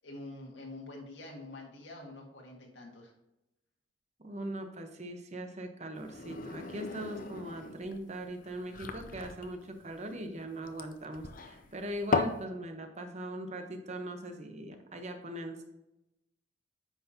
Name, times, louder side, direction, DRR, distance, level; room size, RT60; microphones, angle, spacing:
voice 1, 0.0-3.1, left 2 dB, 90° left, 0 dB, 1.8 m, -46 dB
voice 2, 4.2-15.6, right 1 dB, 40° right, 6 dB, 1.0 m, -40 dB
sound 1, 5.9-12.4, left 4 dB, 50° left, 0.6 m, -37 dB
9.3 x 5.9 x 2.9 m, 0.90 s
head